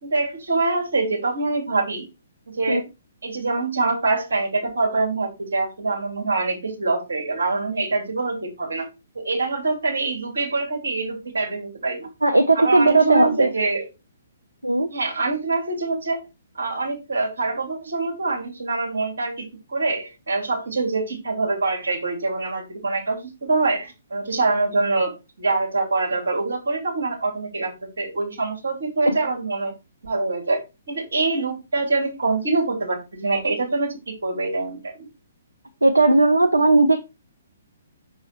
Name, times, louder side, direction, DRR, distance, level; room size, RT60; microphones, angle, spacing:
voice 1, 0.0-2.1 2.5-2.8 3.2-8.9 9.1-12.1 12.5-13.9 14.9-16.2 16.5-29.7 30.0-35.1, right 3 dB, 60° right, 0 dB, 2.9 m, -25 dB
voice 2, 12.2-13.5 14.6-14.9 29.1-29.2 35.8-37.0, right 2 dB, 80° right, 6 dB, 0.7 m, -17 dB
6.2 x 4.7 x 4.1 m, 0.27 s
figure-of-eight pair, 125°, 0 cm